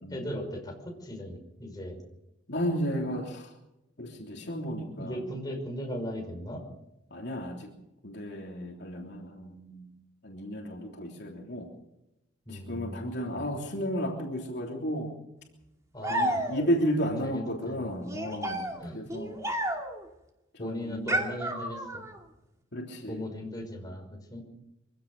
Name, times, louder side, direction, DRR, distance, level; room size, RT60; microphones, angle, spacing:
voice 1, 0.1-2.0 4.8-6.6 12.5-13.4 15.9-16.5 17.2-18.0 18.8-19.0 20.6-22.0 23.1-24.4, equal, 20° left, 2 dB, 5.6 m, -38 dB
voice 2, 2.5-3.5 4.0-5.2 7.1-7.7 8.0-9.9 10.2-11.7 12.5-15.1 16.1-19.4 20.5-21.1 22.7-23.3, equal, 60° left, 0 dB, 3.2 m, -33 dB
sound 1, 16.0-16.9 18.1-20.1 21.1-22.2, right 1 dB, 15° right, 2.4 m, -31 dB
24.5 x 16.0 x 6.6 m, 0.90 s
head